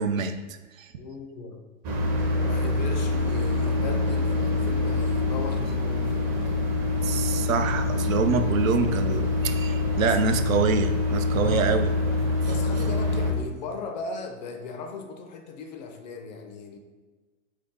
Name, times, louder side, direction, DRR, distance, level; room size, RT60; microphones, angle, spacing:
voice 1, 0.0-0.9 7.0-11.9, right 5 dB, 85° right, 8 dB, 0.5 m, -26 dB
voice 2, 1.0-1.6 2.4-6.6 10.0-10.2 11.4-11.7 12.4-16.8, left 4 dB, 35° left, 5 dB, 0.4 m, -38 dB
sound 1, 1.8-13.3, left 2 dB, 25° right, 0.5 m, -25 dB
3.6 x 2.8 x 3.6 m, 1.3 s
hypercardioid pair, 120°, 39 cm